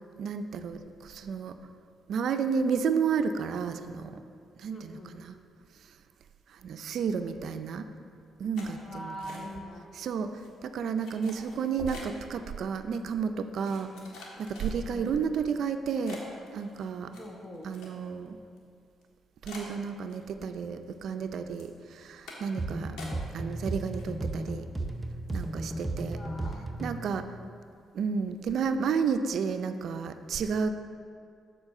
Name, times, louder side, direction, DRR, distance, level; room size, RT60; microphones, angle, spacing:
voice 1, 0.2-1.6 2.1-4.2 4.6-5.4 6.6-7.9 8.4-9.5 9.9-13.9 14.4-16.2 16.5-17.2 17.6-18.4 19.4-23.0 23.3-24.7 25.3-26.2 26.8-27.3 27.9-30.7, right 6 dB, 65° right, 9 dB, 0.4 m, -31 dB
voice 2, 4.7-5.1 8.8-9.9 13.9-14.0 14.9-15.1 17.2-17.7 26.1-26.7 27.1-27.2, equal, 35° left, 1 dB, 1.1 m, -43 dB
sound 1, 8.5-9.8 10.1-10.5 11.0-12.3 12.9-13.0 13.6-15.1 15.6-15.7 16.1-18.3 18.6-18.7 19.0-19.1 19.4-20.5 20.8-21.3 21.6-21.8 22.3-22.6 23.0-23.6 23.8-24.5 24.8-25.0 25.3-25.5, left 2 dB, 85° left, 1.4 m, -48 dB
sound 2, 22.6-27.1, right 2 dB, 20° right, 0.6 m, -34 dB
7.3 x 4.3 x 6.5 m, 2.4 s
cardioid pair, 90°, 0 cm